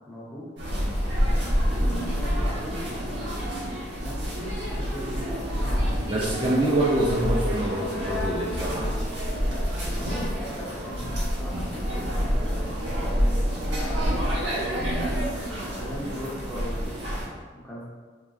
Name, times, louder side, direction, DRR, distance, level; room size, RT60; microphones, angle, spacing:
voice 1, 0.1-0.5 1.7-6.1 9.9-12.7 13.1-14.9 15.7-17.8, equal, 5° left, -7 dB, 0.7 m, -39 dB
sound 1, 0.6-17.3, equal, 75° right, 1.0 m, -28 dB
voice 2, 6.1-9.0 14.7-15.1, right 1 dB, 25° right, -5 dB, 0.4 m, -26 dB
3.7 x 3.2 x 2.3 m, 1.5 s
head